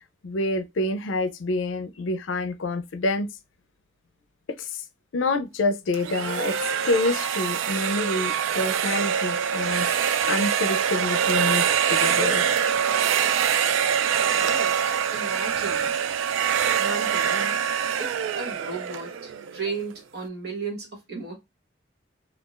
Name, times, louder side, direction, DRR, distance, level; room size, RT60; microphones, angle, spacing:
voice 1, 0.2-3.3 4.6-4.7 5.1-6.6 6.8-9.9 10.2-12.4, left 2 dB, 85° left, 0.5 m, -27 dB
sound 1, 5.9-19.8, right 8 dB, 90° right, 0.3 m, -24 dB
voice 2, 14.1-14.8 15.1-15.9 16.8-17.6 18.0-21.3, right 4 dB, 55° right, 1.4 m, -35 dB
3.8 x 2.3 x 2.4 m
head